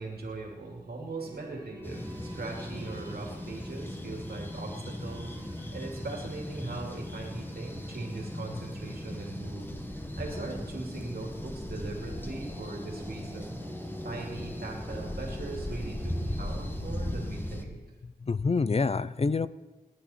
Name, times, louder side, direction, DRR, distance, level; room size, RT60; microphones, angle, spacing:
voice 1, 0.0-5.4 5.7-13.6 14.0-17.8, right 3 dB, 80° right, 0 dB, 2.5 m, -40 dB
sound 1, 1.2-17.1, equal, 20° right, 2.8 m, -49 dB
sound 2, 1.8-17.6, left 1 dB, 15° left, 1.7 m, -38 dB
voice 2, 18.0-19.5, left 4 dB, 40° left, 16 dB, 0.5 m, -27 dB
20.0 x 9.5 x 4.3 m, 1.2 s
cardioid pair, 50°, 16 cm